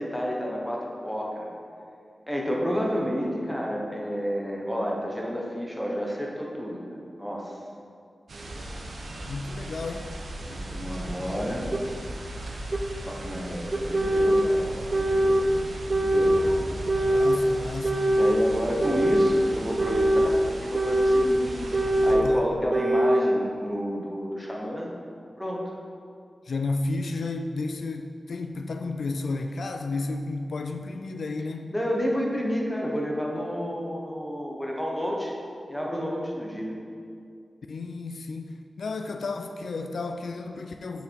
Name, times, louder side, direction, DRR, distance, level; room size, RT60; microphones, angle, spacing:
voice 1, 0.0-1.5 2.3-7.6 10.5-11.7 13.0-14.6 14.9-15.4 16.0-16.4 18.2-24.9 25.4-25.6 31.7-35.3 35.7-36.7, equal, 5° left, -2 dB, 1.2 m, -30 dB
sound 1, 8.3-22.1, right 1 dB, 70° right, 1.0 m, -37 dB
voice 2, 9.3-10.1 17.0-18.2 22.2-22.5 26.5-31.7 37.7-41.0, left 3 dB, 75° left, 6 dB, 0.4 m, -32 dB
sound 2, 11.7-11.8 12.7-12.8 13.7-14.5 14.9-15.5 15.9-16.5 16.9-17.4 17.8-18.4 18.8-19.4 19.8-20.3 20.7-21.3 21.7-22.3 22.7-23.3, right 1 dB, 35° right, 0.4 m, -22 dB
6.9 x 6.5 x 4.7 m, 2.4 s
wide cardioid pair, 130°, 0 cm